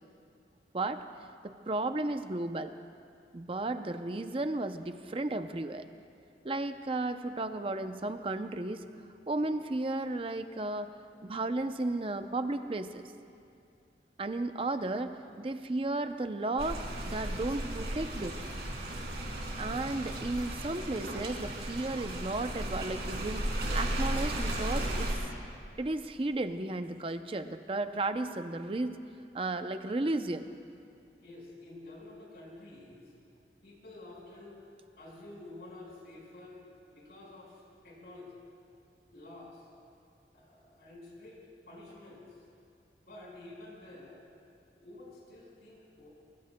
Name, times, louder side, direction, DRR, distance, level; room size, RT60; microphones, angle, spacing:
voice 1, 1.4-2.7 3.3-5.9 6.4-8.8 9.3-10.9 11.2-13.1 14.2-18.4 19.6-25.1 25.8-29.0 29.3-30.5, right 2 dB, 30° right, 9 dB, 0.5 m, -34 dB
sound 1, 16.6-25.1, right 1 dB, 70° right, 2.7 m, -35 dB
voice 2, 31.2-33.1 33.6-34.6 35.0-36.6 36.9-38.4 39.1-39.7 40.3-41.4 41.7-42.4 43.0-44.2 44.7-46.1, left 2 dB, 65° left, -4 dB, 4.8 m, -50 dB
24.0 x 21.5 x 2.2 m, 2.5 s
head